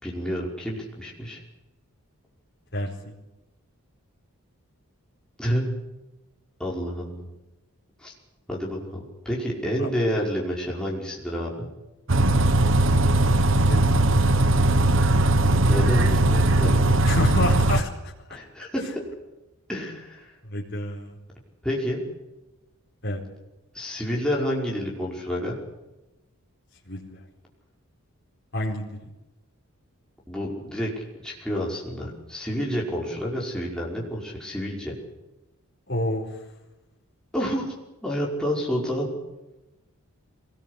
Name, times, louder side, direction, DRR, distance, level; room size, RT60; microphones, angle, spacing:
voice 1, 0.0-1.4 5.4-5.7 6.6-7.3 8.0-8.1 8.5-11.7 15.6-16.9 18.3-18.8 19.7-20.3 21.6-22.0 23.7-25.6 30.3-34.9 37.3-37.7 38.0-39.1, equal, 5° left, -4 dB, 5.4 m, -29 dB
Bus, 12.1-17.8, right 2 dB, 55° right, 1.1 m, -19 dB
voice 2, 13.5-14.4 17.1-18.1 20.4-21.1 23.0-23.2 26.9-27.2 28.5-29.0 35.9-36.3, left 1 dB, 50° left, -3 dB, 4.4 m, -29 dB
25.0 x 19.5 x 8.3 m, 1.0 s
head